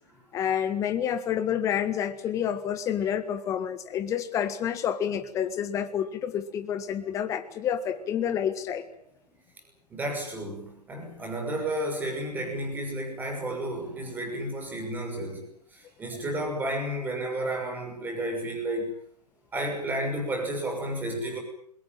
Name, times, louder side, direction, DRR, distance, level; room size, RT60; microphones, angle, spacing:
voice 1, 0.3-8.8, left 9 dB, 15° left, 10 dB, 1.7 m, -29 dB
voice 2, 9.9-18.9 19.5-21.4, right 1 dB, 10° right, 3 dB, 6.2 m, -32 dB
22.5 x 21.0 x 9.2 m, 0.66 s
figure-of-eight pair, 135°, 21 cm